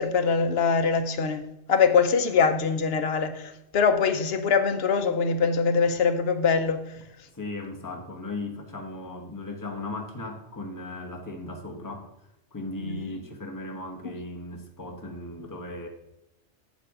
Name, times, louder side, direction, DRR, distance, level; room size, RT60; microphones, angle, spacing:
voice 1, 0.0-7.0 12.8-13.0, left 5 dB, 60° left, 1.1 m, -23 dB
voice 2, 7.3-12.1 12.5-15.9, left 2 dB, 15° left, 1.2 m, -37 dB
7.9 x 7.1 x 4.9 m
omnidirectional pair, 1.2 m